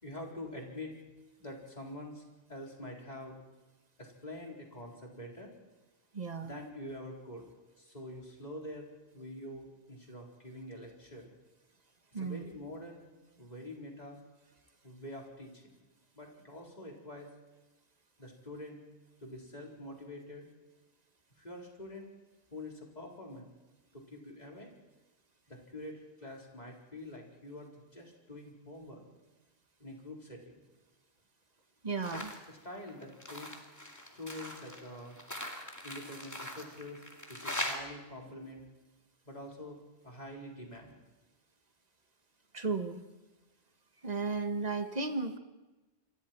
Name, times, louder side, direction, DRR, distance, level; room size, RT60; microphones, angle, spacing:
voice 1, 0.0-0.9 1.4-2.2 2.5-3.4 4.0-5.5 6.4-7.5 7.8-11.3 12.1-13.1 13.4-14.2 14.8-15.7 16.1-17.3 18.2-18.8 19.2-20.5 21.4-22.1 22.5-23.5 23.9-24.7 25.5-29.1 29.8-30.4 32.1-33.6 34.1-35.2 35.8-38.6 39.2-41.0, left 1 dB, 40° left, -1 dB, 4.4 m, -46 dB
voice 2, 6.1-6.5 12.1-12.4 31.8-32.3 42.5-43.0 44.0-45.4, right 4 dB, 40° right, 7 dB, 1.6 m, -34 dB
sound 1, 32.0-32.4 32.8-37.8, left 1 dB, 15° left, 2.5 m, -41 dB
28.0 x 23.0 x 4.5 m, 1.1 s
omnidirectional pair, 1.1 m